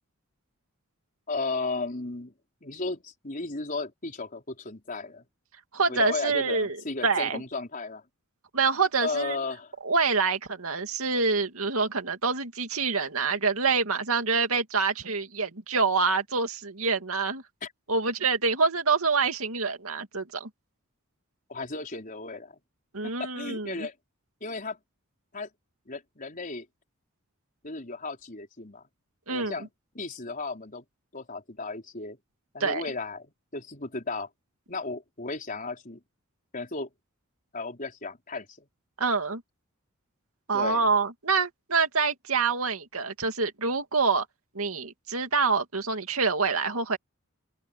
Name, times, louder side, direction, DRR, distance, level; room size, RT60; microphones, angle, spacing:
voice 1, 1.3-2.3 2.6-5.2 5.9-8.0 9.0-9.7 17.6-17.7 21.5-22.6 23.0-23.9 24.4-24.8 25.3-25.5 25.9-26.7 27.6-28.8 29.3-29.7 29.9-30.8 31.1-32.2 32.5-33.3 33.5-34.3 34.7-36.0 36.5-36.9 37.5-38.7 40.5-40.9, left 3 dB, 40° left, 4.6 m, -35 dB
voice 2, 5.7-6.8 7.0-7.4 8.5-9.4 9.8-17.4 17.9-20.5 22.9-23.9 29.3-29.7 32.6-32.8 39.0-39.4 40.5-44.3 44.5-47.0, right 4 dB, 80° right, 2.5 m, -26 dB
open air
head